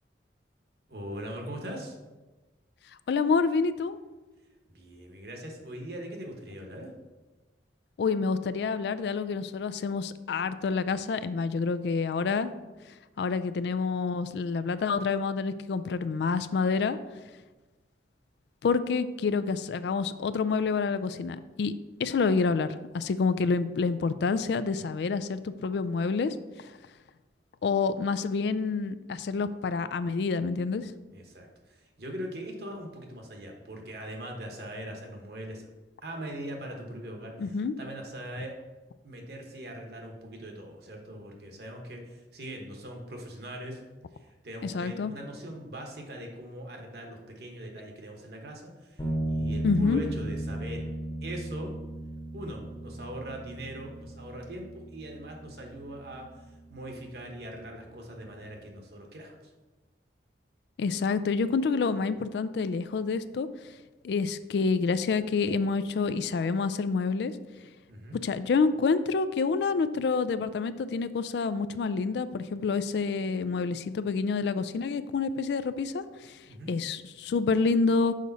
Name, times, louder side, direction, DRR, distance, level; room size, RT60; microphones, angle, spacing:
voice 1, 0.9-2.0 4.7-6.9 31.1-35.7 36.0-38.6 39.0-43.8 44.1-50.8 51.2-51.7 52.3-59.5 67.9-68.2 76.5-76.7, right 1 dB, 60° right, 2 dB, 1.1 m, -41 dB
voice 2, 3.1-4.0 8.0-12.5 13.2-17.0 18.6-21.7 22.0-26.3 27.6-30.9 37.4-37.7 44.6-45.1 49.6-50.0 60.8-63.5 64.0-67.3 68.2-76.4 76.7-78.1, left 4 dB, 65° left, 13 dB, 0.3 m, -28 dB
sound 1, 49.0-58.5, right 1 dB, 25° left, 1.0 m, -37 dB
6.6 x 5.1 x 4.0 m, 1.2 s
head